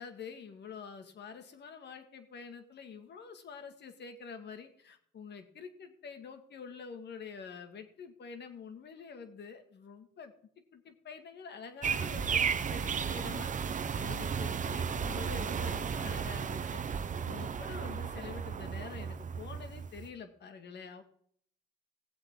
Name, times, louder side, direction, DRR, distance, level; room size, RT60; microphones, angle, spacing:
voice 1, 0.0-10.3 10.7-13.5 14.0-17.0 17.3-21.0, left 6 dB, 60° left, 7 dB, 2.0 m, -47 dB
sound 1, 11.8-20.1, right 6 dB, 40° right, 0.8 m, -34 dB
18.5 x 7.9 x 3.8 m, 0.62 s
cardioid pair, 90°, 20 cm